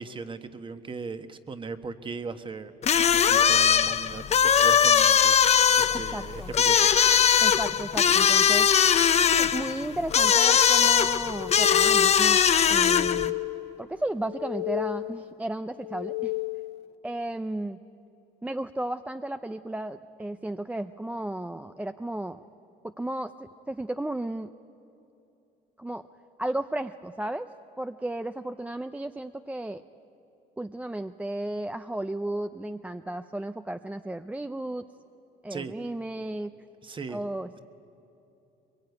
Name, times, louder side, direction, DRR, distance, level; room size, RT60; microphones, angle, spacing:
voice 1, 0.0-2.7 3.1-5.4 5.8-6.9 35.5-35.7 36.8-37.2, right 4 dB, 30° right, 9 dB, 1.3 m, -38 dB
sound 1, 2.8-13.3, left 8 dB, 40° left, 0.8 m, -21 dB
voice 2, 5.9-6.5 7.4-8.7 9.3-12.4 12.7-13.4 13.8-16.3 17.0-17.8 18.4-22.4 22.8-23.3 23.7-24.5 25.8-26.0 26.4-27.5 27.8-29.8 30.6-34.9 35.4-36.5 37.1-37.5, right 1 dB, 10° right, 9 dB, 0.5 m, -34 dB
sound 2, 11.2-12.3 12.7-13.8 14.2-15.3 15.8-16.9, left 22 dB, 75° left, 0.5 m, -33 dB
23.0 x 22.5 x 9.5 m, 2.9 s
cardioid pair, 110°, 17 cm